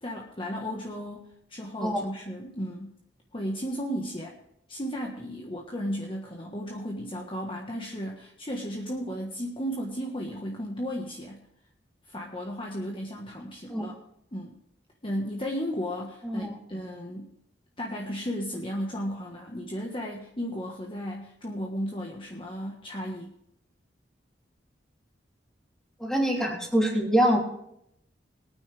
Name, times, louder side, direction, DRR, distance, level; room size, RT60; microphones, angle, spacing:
voice 1, 0.0-3.0 3.3-4.4 4.7-11.4 12.1-13.9 14.3-14.6 15.0-17.3 17.8-23.3, equal, 30° left, 0 dB, 1.4 m, -34 dB
voice 2, 16.2-16.6 26.0-27.4, equal, 5° left, -2 dB, 3.0 m, -24 dB
21.0 x 9.3 x 3.4 m, 0.77 s
head